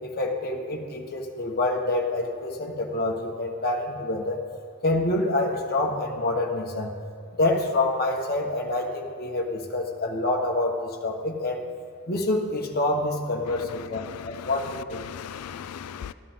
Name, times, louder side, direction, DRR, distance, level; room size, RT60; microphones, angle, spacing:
voice 1, 0.0-4.4 4.8-6.9 7.4-11.6 12.1-15.0, left 2 dB, 45° left, 1 dB, 1.3 m, -27 dB
voice 2, 13.5-16.1, left 8 dB, 80° left, 14 dB, 0.4 m, -39 dB
14.0 x 13.0 x 3.7 m, 2.1 s
head